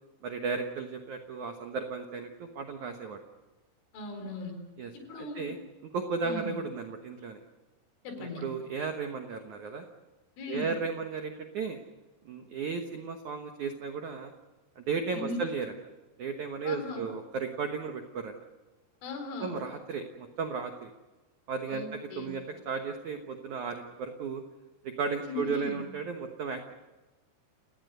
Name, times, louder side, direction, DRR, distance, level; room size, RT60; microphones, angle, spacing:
voice 1, 0.2-3.2 4.8-5.6 5.9-7.4 8.2-9.9 10.5-11.8 12.3-14.3 14.8-15.7 16.2-18.4 19.4-20.9 21.5-24.4 24.8-26.7, right 5 dB, 75° right, 5 dB, 1.7 m, -35 dB
voice 2, 3.9-4.6 4.9-5.5 6.2-6.5 8.0-8.5 10.4-10.7 15.1-15.4 16.6-17.0 19.0-19.6 21.7-22.3 25.3-25.8, left 2 dB, 85° left, 5 dB, 6.6 m, -38 dB
30.0 x 18.5 x 6.8 m, 1.1 s
omnidirectional pair, 5.5 m